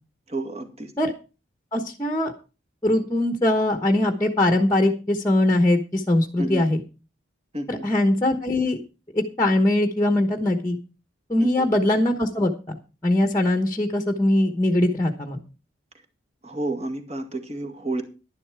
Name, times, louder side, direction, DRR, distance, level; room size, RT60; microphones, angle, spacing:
voice 1, 0.3-0.9 6.4-6.7 7.5-7.8 11.4-11.7 16.4-18.0, right 2 dB, 35° right, 4 dB, 2.1 m, -30 dB
voice 2, 1.7-2.3 2.8-6.8 7.7-8.8 9.1-10.8 11.3-12.8 13.0-15.4, left 1 dB, 15° left, 5 dB, 1.1 m, -21 dB
11.5 x 11.0 x 4.7 m, 0.32 s
head